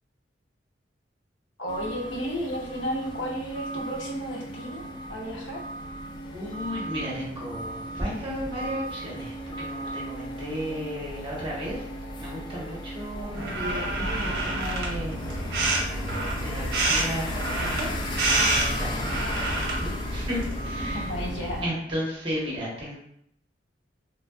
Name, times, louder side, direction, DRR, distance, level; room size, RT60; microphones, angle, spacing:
voice 1, 1.6-5.6 13.1-13.4 20.9-21.7, equal, 85° left, -2 dB, 0.7 m, -33 dB
sound 1, 1.7-21.4, equal, 25° left, 0.3 m, -36 dB
voice 2, 6.3-11.8 12.2-15.7 16.4-21.1 21.6-23.0, equal, 30° right, -5 dB, 1.0 m, -34 dB
sound 2, 13.3-21.6, right 2 dB, 60° right, 0.7 m, -28 dB
3.0 x 2.4 x 2.3 m, 0.72 s
head